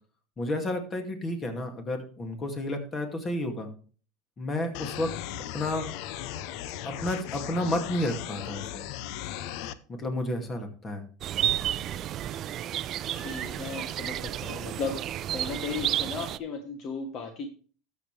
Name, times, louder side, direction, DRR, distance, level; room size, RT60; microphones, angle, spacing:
voice 1, 0.4-3.7 4.4-5.1 5.5-5.9 6.8-8.8 9.9-11.0, left 1 dB, 25° left, 5 dB, 2.3 m, -31 dB
sound 1, 4.7-9.7, left 11 dB, 65° left, 0.7 m, -37 dB
sound 2, 11.2-16.4, right 11 dB, 45° right, 0.5 m, -31 dB
voice 2, 13.1-15.0 15.3-17.5, left 4 dB, 45° left, 5 dB, 1.5 m, -35 dB
13.0 x 7.2 x 3.3 m, 0.40 s
supercardioid pair, 115°, 0 cm